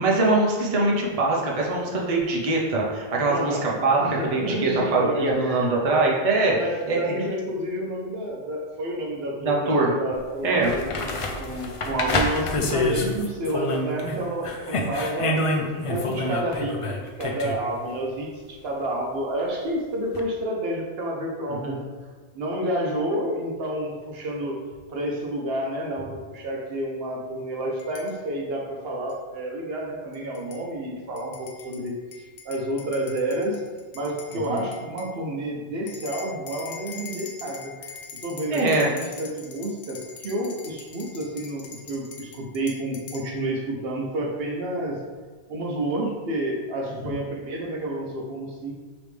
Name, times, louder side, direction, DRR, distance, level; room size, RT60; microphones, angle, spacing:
voice 1, 0.0-4.0 4.3-6.6 6.9-7.2 9.4-9.9 10.4-10.7 21.6-21.8 34.5-34.6 38.5-38.9 47.0-47.1, right 2 dB, 40° right, -3 dB, 0.7 m, -23 dB
voice 2, 3.2-3.7 4.0-5.7 6.5-15.4 15.7-21.9 22.3-24.6 24.9-32.0 32.4-33.6 33.9-37.9 38.2-45.0 45.5-48.7, right 1 dB, 70° right, 0 dB, 0.9 m, -30 dB
sound 1, 10.1-10.2 10.6-14.2 14.4-17.6 20.1-20.2, left 2 dB, 55° left, 0.3 m, -27 dB
sound 2, 27.8-28.1 29.1-29.2 30.1-30.6 31.2-35.1 35.9-43.3, left 5 dB, 85° left, 0.9 m, -43 dB
4.9 x 3.0 x 3.3 m, 1.4 s
omnidirectional pair, 1.1 m